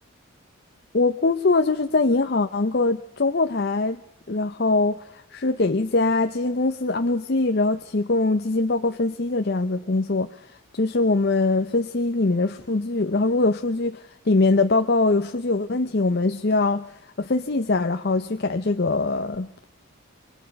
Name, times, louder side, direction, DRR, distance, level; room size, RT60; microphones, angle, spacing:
voice 1, 0.9-4.0 4.3-10.5 10.7-16.9 17.2-19.7, left 3 dB, 50° left, 7 dB, 0.7 m, -22 dB
27.0 x 22.0 x 5.3 m, 0.86 s
head